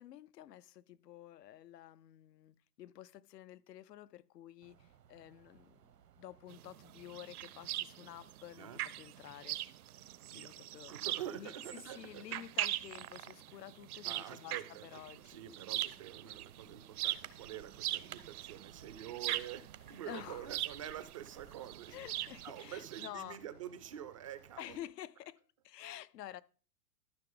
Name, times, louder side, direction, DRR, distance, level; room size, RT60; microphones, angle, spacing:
voice 1, 0.0-5.9 6.2-8.7 9.0-9.6 10.3-11.0 11.3-15.4 19.9-20.5 21.9-23.4 24.6-26.4, left 12 dB, 80° left, 0.7 m, -50 dB
sound 1, 4.6-24.6, right 10 dB, 85° right, 1.0 m, -60 dB
sound 2, 6.5-23.1, right 14 dB, 65° right, 0.6 m, -41 dB
voice 2, 10.3-12.2 14.0-22.0 22.4-24.8, right 10 dB, 25° right, 0.4 m, -47 dB
12.5 x 6.0 x 3.8 m
hypercardioid pair, 135°, 48 cm